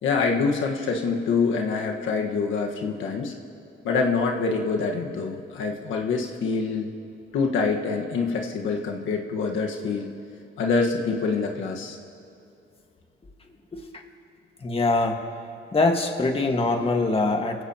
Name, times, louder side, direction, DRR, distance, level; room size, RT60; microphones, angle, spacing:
voice 1, 0.0-3.3 3.8-6.9 7.3-10.1 10.6-12.0, left 4 dB, 80° left, 1 dB, 1.5 m, -25 dB
voice 2, 13.7-14.0 14.6-15.2 15.7-17.6, left 3 dB, 30° left, 3 dB, 1.7 m, -23 dB
30.0 x 16.0 x 3.0 m, 2.6 s
cardioid pair, 90°, 20 cm